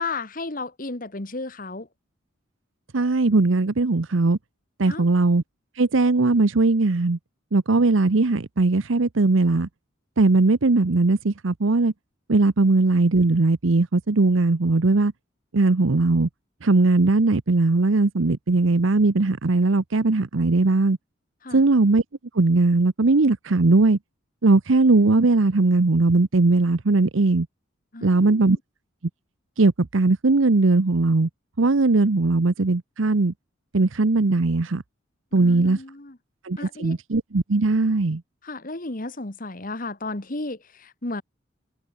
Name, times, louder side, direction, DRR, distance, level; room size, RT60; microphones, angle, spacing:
voice 1, 0.0-1.9 4.9-5.1 21.4-21.6 27.9-28.6 35.3-36.2 36.6-37.0 38.4-41.2, left 3 dB, 40° left, 1.5 m, -33 dB
voice 2, 2.9-4.4 4.8-5.4 5.8-7.2 7.5-9.7 10.2-11.9 12.3-15.1 15.5-16.3 16.6-21.0 21.5-22.0 22.3-24.0 24.4-27.5 28.0-28.6 29.6-31.3 31.6-33.3 33.7-34.8 35.3-35.8 36.4-38.2, right 3 dB, 75° right, 0.8 m, -19 dB
head